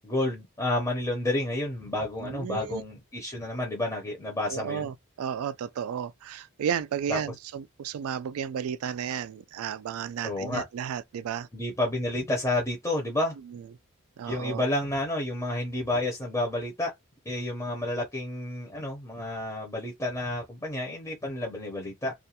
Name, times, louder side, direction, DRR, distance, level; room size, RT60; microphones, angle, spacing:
voice 1, 0.0-4.9 7.1-7.2 10.2-10.6 11.5-13.3 14.3-16.9 17.3-22.1, left 1 dB, 15° left, 0.6 m, -30 dB
voice 2, 2.2-2.8 4.5-11.5 13.5-13.7 14.2-14.6 17.7-17.8, right 8 dB, 80° right, 0.3 m, -33 dB
2.4 x 2.2 x 2.8 m
head